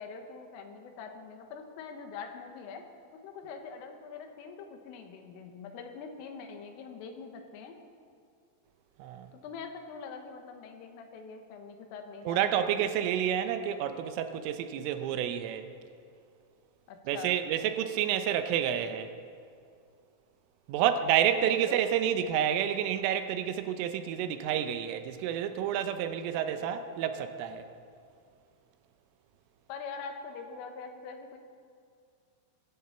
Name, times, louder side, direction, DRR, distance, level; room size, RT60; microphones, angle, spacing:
voice 1, 0.0-2.8 3.2-7.8 9.3-12.9 16.9-17.4 21.2-21.8 29.7-31.4, left 5 dB, 80° left, 5 dB, 3.8 m, -44 dB
voice 2, 12.3-15.7 17.1-19.1 20.7-27.7, right 9 dB, 80° right, 8 dB, 3.3 m, -29 dB
23.0 x 14.0 x 4.4 m, 2.3 s
omnidirectional pair, 5.8 m